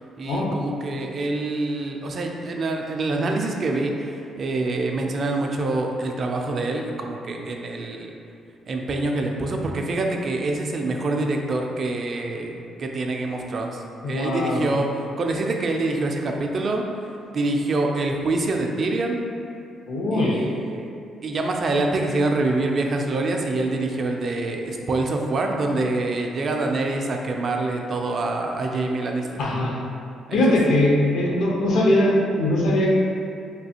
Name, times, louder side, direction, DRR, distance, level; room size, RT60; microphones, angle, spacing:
voice 1, 0.2-8.1 8.7-14.9 15.2-16.8 17.3-19.2 20.1-20.9 21.2-29.3 30.3-30.5 31.2-31.5, right 2 dB, 50° right, 2 dB, 0.3 m, -26 dB
voice 2, 14.0-14.7 19.9-20.4 29.4-29.8 30.3-32.9, left 1 dB, 75° left, -3 dB, 0.6 m, -21 dB
3.3 x 2.4 x 2.8 m, 2.5 s
cardioid pair, 90°, 0 cm